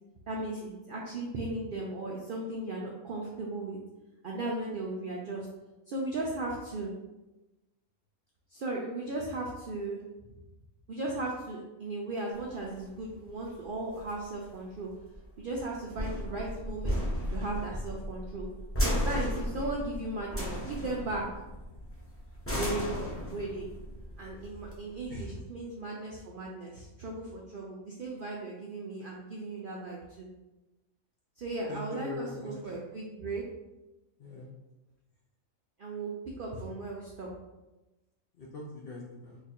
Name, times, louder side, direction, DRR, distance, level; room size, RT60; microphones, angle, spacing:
voice 1, 0.3-3.8 4.2-5.5 5.9-6.9 8.5-10.0 10.9-14.9 15.4-17.0 17.3-18.5 18.8-21.3 22.5-23.0 23.3-23.7 24.2-30.3 31.4-33.4 35.8-36.1 36.4-37.3, right 2 dB, 70° right, -2 dB, 0.5 m, -36 dB
Metal Sheet Hit, 12.4-25.4, equal, 10° left, 0.7 m, -35 dB
voice 2, 31.7-32.5 34.2-34.5 38.4-39.4, left 2 dB, 60° left, -3 dB, 0.6 m, -41 dB
2.9 x 2.4 x 4.2 m, 1.0 s
omnidirectional pair, 1.5 m